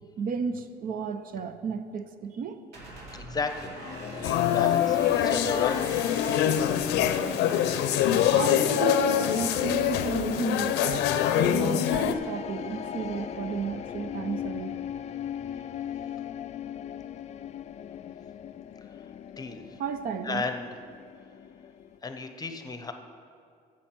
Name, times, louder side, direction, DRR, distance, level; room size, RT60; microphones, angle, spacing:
voice 1, 0.2-2.6 8.4-11.1 11.4-14.7 19.8-20.5, right 6 dB, 55° right, 10 dB, 0.6 m, -33 dB
sound 1, 2.7-10.3, right 1 dB, 90° right, 1.9 m, -42 dB
voice 2, 3.1-3.7 4.2-5.8 18.9-19.1 19.4-19.8 20.2-20.8 22.0-22.9, left 4 dB, 20° left, 7 dB, 0.8 m, -34 dB
sound 2, 3.8-22.0, left 9 dB, 40° left, 0.4 m, -37 dB
sound 3, 4.2-12.1, left 10 dB, 90° left, 0.5 m, -25 dB
9.8 x 7.4 x 6.0 m, 2.3 s
cardioid pair, 110°, 17 cm